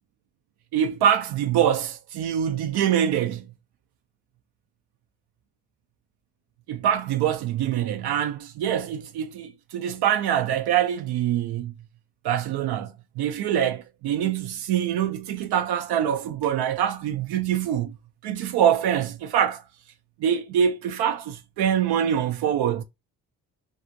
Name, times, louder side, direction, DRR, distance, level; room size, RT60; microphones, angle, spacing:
voice 1, 0.7-3.5 6.7-11.7 12.2-17.9 18.2-19.6 20.2-22.8, right 9 dB, 75° right, 0.5 m, -24 dB
2.7 x 2.4 x 2.5 m
supercardioid pair, 50°, 40 cm